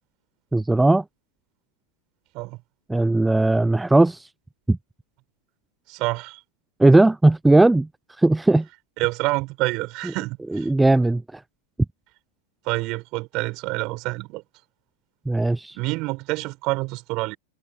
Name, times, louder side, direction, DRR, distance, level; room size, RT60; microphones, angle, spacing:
voice 1, 0.5-1.0 2.9-4.3 4.7-4.8 6.8-7.9 8.2-8.7 10.5-11.4 15.3-15.8, right 2 dB, 5° right, 0.6 m, -18 dB
voice 2, 5.9-6.4 9.0-10.7 12.6-14.4 15.7-17.4, right 23 dB, 40° right, 7.1 m, -27 dB
figure-of-eight pair, 90°, 0 cm